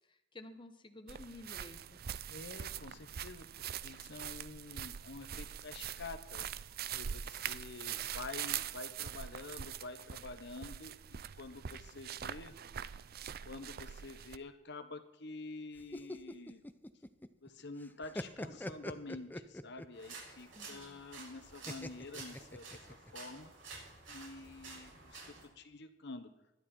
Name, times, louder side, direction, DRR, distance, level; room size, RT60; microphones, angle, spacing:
voice 1, 0.0-2.0 20.5-21.0, left 2 dB, 25° left, 7 dB, 1.1 m, -52 dB
sound 1, 1.1-14.4, right 9 dB, 55° right, 0.5 m, -43 dB
voice 2, 2.3-6.4 6.9-12.6 13.4-16.6 17.4-23.5 24.1-26.3, left 3 dB, 65° left, 9 dB, 1.2 m, -48 dB
sound 2, 15.8-17.5 17.8-20.0 21.7-23.1, left 1 dB, 10° left, 0.7 m, -43 dB
sound 3, 19.9-25.5, right 4 dB, 85° right, 6.7 m, -51 dB
20.5 x 12.5 x 4.5 m, 0.90 s
head